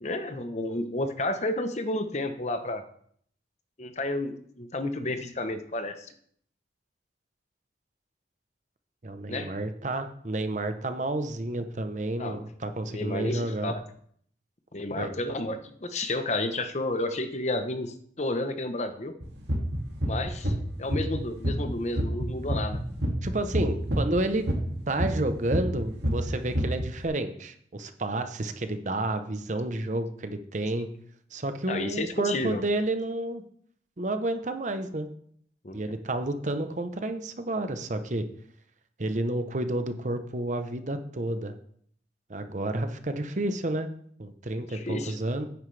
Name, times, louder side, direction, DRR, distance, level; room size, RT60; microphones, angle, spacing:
voice 1, 0.0-2.8 3.8-6.1 9.3-9.5 12.2-12.4 12.9-13.8 14.7-19.1 20.1-20.5 20.8-22.8 31.7-32.6 35.6-35.9 44.7-45.2, left 2 dB, 40° left, 8 dB, 0.9 m, -31 dB
voice 2, 9.0-13.7 15.0-15.2 23.2-24.5 24.9-30.9 31.3-33.4 34.0-35.1 35.7-38.2 39.0-41.5 42.3-43.9 44.2-45.4, right 1 dB, 45° right, 8 dB, 0.8 m, -30 dB
sound 1, 19.2-21.2 21.4-25.3 25.5-26.9, equal, 80° right, 2.1 m, -27 dB
10.0 x 9.5 x 3.3 m, 0.63 s
head